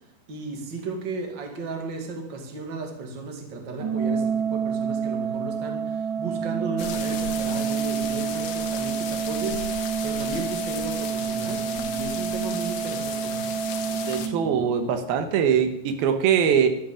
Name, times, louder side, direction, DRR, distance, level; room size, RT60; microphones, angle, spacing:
voice 1, 0.3-13.5, right 3 dB, 35° right, 3 dB, 2.4 m, -34 dB
Organ, 3.8-14.8, right 7 dB, 65° right, 4.3 m, -28 dB
sound 1, 6.8-14.3, left 8 dB, 75° left, 2.8 m, -36 dB
voice 2, 14.1-16.7, right 8 dB, 85° right, 7 dB, 3.0 m, -22 dB
12.5 x 8.6 x 8.7 m, 0.80 s
omnidirectional pair, 4.3 m